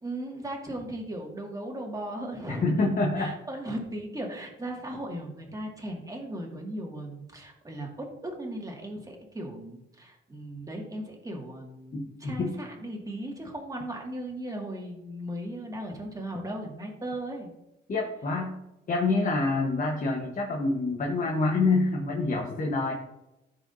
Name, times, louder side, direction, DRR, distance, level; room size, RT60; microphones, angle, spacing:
voice 1, 0.0-17.5, right 1 dB, 15° right, 0 dB, 2.1 m, -37 dB
voice 2, 2.5-3.3 11.9-12.5 17.9-18.5 18.9-22.9, left 3 dB, 40° left, 0 dB, 1.2 m, -27 dB
13.5 x 4.9 x 2.7 m, 0.90 s
cardioid pair, 90°, 20 cm